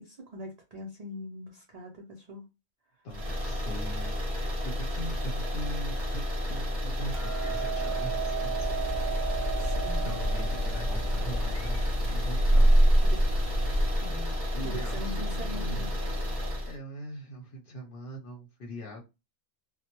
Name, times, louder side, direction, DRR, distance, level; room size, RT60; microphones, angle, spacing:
voice 1, 0.0-2.4 9.6-10.2 13.0-13.2 14.0-14.3 14.6-16.0, left 1 dB, 70° right, 0.3 m, -42 dB
voice 2, 3.0-4.2 4.8-8.8 10.0-12.7 14.5-15.9 16.6-19.0, equal, 50° left, 0.8 m, -41 dB
sound 1, 3.1-16.8, left 1 dB, 35° right, 0.7 m, -31 dB
Hammer, 7.1-13.4, right 10 dB, 90° right, 1.0 m, -37 dB
sound 2, 8.6-14.0, right 1 dB, 75° left, 1.0 m, -26 dB
2.1 x 2.0 x 2.9 m
omnidirectional pair, 1.3 m